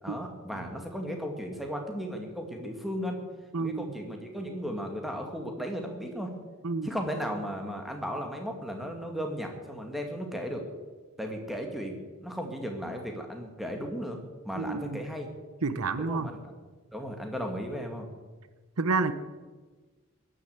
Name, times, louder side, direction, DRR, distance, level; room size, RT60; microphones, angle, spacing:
voice 1, 0.0-3.2 3.6-6.3 6.8-10.6 11.2-15.3 16.0-16.5 16.9-18.1, equal, ahead, 2 dB, 2.1 m, -35 dB
voice 2, 3.5-3.9 6.6-6.9 14.6-15.0 15.6-16.3 18.8-19.1, right 3 dB, 80° right, 12 dB, 0.9 m, -29 dB
16.0 x 11.5 x 7.9 m, 1.4 s
head